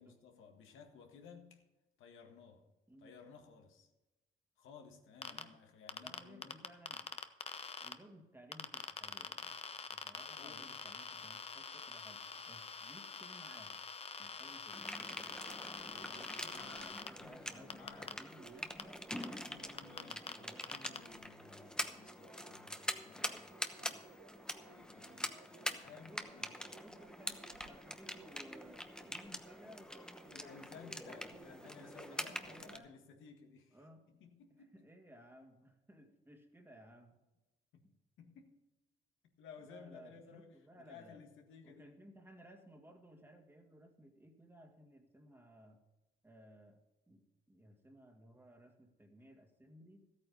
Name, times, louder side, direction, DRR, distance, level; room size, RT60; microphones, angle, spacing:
voice 1, 0.0-1.6 2.0-2.7 3.0-3.9 4.6-6.6 10.2-10.7 15.8-18.2 19.3-23.5 23.8-24.1 24.6-26.5 30.3-33.8 34.2-34.7 37.7-37.8 38.2-38.5 39.4-42.0, left 6 dB, 85° left, 1.7 m, -57 dB
Geiger Counter Hotspot (Sweeping), 5.2-5.4 5.9-7.9 8.5-17.1 17.7-18.1 18.8-18.9 19.2-19.3 19.8-20.3 20.6-21.0, left 5 dB, 30° left, 0.8 m, -45 dB
voice 2, 5.3-5.6 6.0-7.2 7.8-13.8 14.2-15.4 15.9-19.1 20.0-20.7 25.0-25.4 26.1-26.5 26.8-30.7 31.0-33.0 33.7-34.2 34.6-37.2 37.8-37.9 39.6-41.2 41.6-45.8 46.2-50.1, equal, 10° right, 2.0 m, -59 dB
sound 1, 14.7-32.8, left 1 dB, 5° left, 1.0 m, -45 dB
sound 2, 15.2-32.8, right 8 dB, 85° right, 1.0 m, -63 dB
13.5 x 8.9 x 5.3 m
cardioid pair, 90°, 20 cm